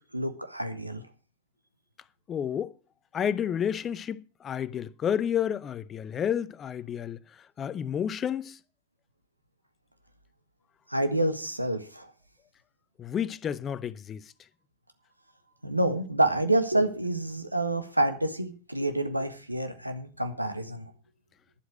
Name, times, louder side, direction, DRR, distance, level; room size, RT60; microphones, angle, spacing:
voice 1, 0.1-1.0 10.9-12.1 15.6-20.9, right 1 dB, 85° right, 1.6 m, -28 dB
voice 2, 2.3-2.7 3.1-7.2 7.6-8.6 13.0-14.2, left 9 dB, 25° left, 0.7 m, -30 dB
11.5 x 8.1 x 6.5 m
figure-of-eight pair, 90°, 0 cm